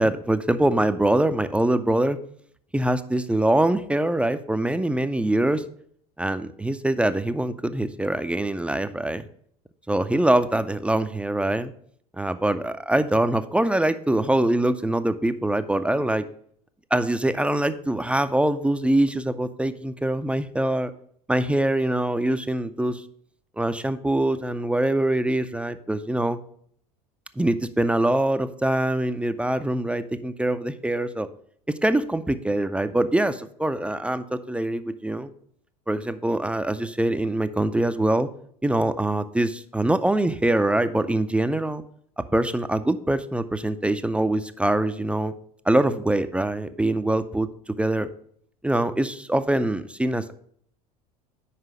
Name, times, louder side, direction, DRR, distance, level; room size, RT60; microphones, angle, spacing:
voice 1, 0.0-2.2 2.7-5.6 6.2-9.2 9.9-11.7 12.1-16.3 16.9-20.9 21.3-23.0 23.6-26.4 27.4-31.3 31.8-35.3 35.9-38.3 38.6-41.8 42.3-45.3 45.7-47.5 47.8-48.1 48.6-50.3, right 1 dB, 5° right, 11 dB, 0.4 m, -23 dB
5.8 x 4.7 x 6.0 m, 0.63 s
hypercardioid pair, 75°, 20 cm